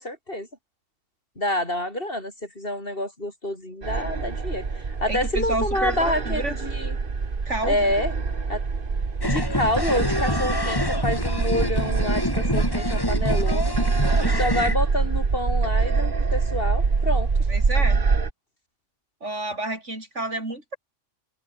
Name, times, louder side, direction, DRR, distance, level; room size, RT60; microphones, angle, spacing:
voice 1, 0.0-0.5 1.4-7.0 7.6-8.1 8.5-8.6 9.2-13.7 14.2-17.7, left 1 dB, 45° left, 8.0 m, -28 dB
sound 1, 3.8-18.3, right 4 dB, 45° right, 1.7 m, -25 dB
voice 2, 5.1-6.5 7.5-7.9 17.5-18.0 19.2-20.8, right 2 dB, 70° right, 6.4 m, -30 dB
sound 2, 9.2-14.8, left 1 dB, 20° left, 2.4 m, -27 dB
omnidirectional pair, 1.3 m